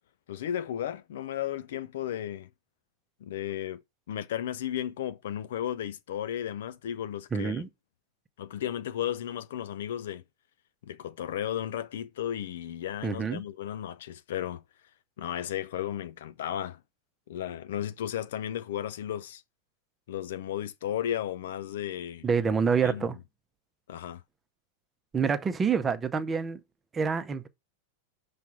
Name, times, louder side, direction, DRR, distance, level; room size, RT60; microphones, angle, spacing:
voice 1, 0.3-2.5 3.2-3.8 4.1-7.6 8.4-10.2 10.8-14.6 15.2-16.8 17.3-19.4 20.1-22.3 22.8-23.1 23.9-24.2, left 10 dB, 60° left, 0.5 m, -34 dB
voice 2, 7.3-7.7 13.0-13.4 22.2-23.2 25.1-26.6 26.9-27.5, right 6 dB, 20° right, 0.7 m, -27 dB
5.9 x 3.2 x 5.7 m
figure-of-eight pair, 90°, 0 cm